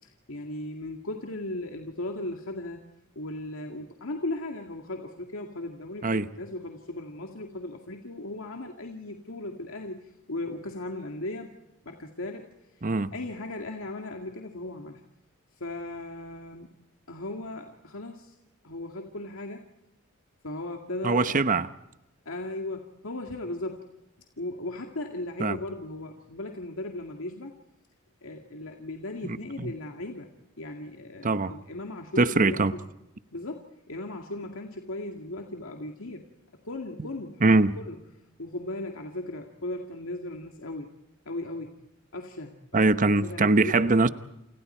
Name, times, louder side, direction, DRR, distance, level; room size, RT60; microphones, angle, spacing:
voice 1, 0.0-2.9 3.2-11.5 11.9-12.5 13.1-15.0 15.6-16.7 17.1-18.3 18.6-19.6 20.4-21.4 22.3-23.9 24.4-27.5 28.2-30.3 30.6-32.6 33.3-36.3 36.6-38.0 38.4-40.9 41.3-41.8 42.1-42.8 43.1-44.0, left 2 dB, 80° left, 3 dB, 2.2 m, -37 dB
voice 2, 21.0-21.7 25.4-25.6 29.2-29.7 31.2-31.5 32.2-32.7 37.4-37.8 42.7-44.1, right 3 dB, 40° right, 13 dB, 0.9 m, -22 dB
28.5 x 28.5 x 4.5 m, 0.90 s
head